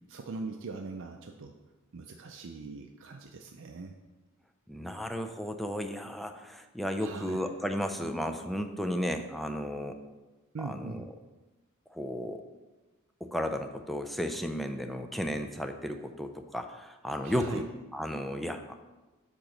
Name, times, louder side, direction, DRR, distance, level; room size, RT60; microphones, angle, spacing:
voice 1, 0.1-1.5 1.9-3.9 7.0-7.4 10.5-11.1 17.2-17.6, right 3 dB, 60° right, 3 dB, 0.5 m, -41 dB
voice 2, 4.7-10.0 10.6-11.0 11.9-12.4 13.2-18.7, equal, ahead, 5 dB, 0.4 m, -34 dB
8.6 x 3.0 x 6.4 m, 1.2 s
head